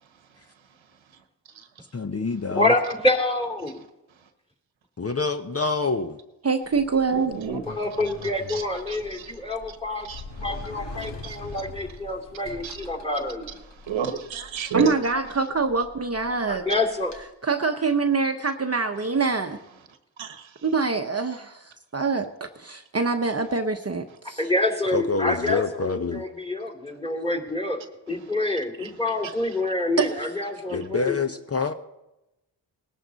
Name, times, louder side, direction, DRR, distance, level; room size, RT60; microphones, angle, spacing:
voice 1, 1.9-2.7 5.0-6.2 24.9-26.2 30.7-31.7, left 4 dB, 35° left, 8 dB, 0.8 m, -26 dB
voice 2, 2.5-3.7 7.7-10.1 10.4-13.5 16.5-17.1 24.4-27.8 28.1-31.2, left 2 dB, 10° left, 0 dB, 2.9 m, -27 dB
voice 3, 6.4-7.3 14.7-16.7 17.4-19.6 20.6-24.5 30.0-30.1, right 4 dB, 35° right, 6 dB, 0.9 m, -25 dB
Sliding door, 6.6-17.2, left 2 dB, 65° left, 2.3 m, -43 dB
voice 4, 7.1-7.6 8.5-9.3 10.1-10.2 11.0-11.5 12.6-12.7 13.8-14.9 20.2-20.5 28.8-28.9 29.2-29.3, right 6 dB, 85° right, 8 dB, 1.2 m, -31 dB
19.0 x 11.0 x 4.0 m, 0.94 s
cardioid pair, 45°, 45 cm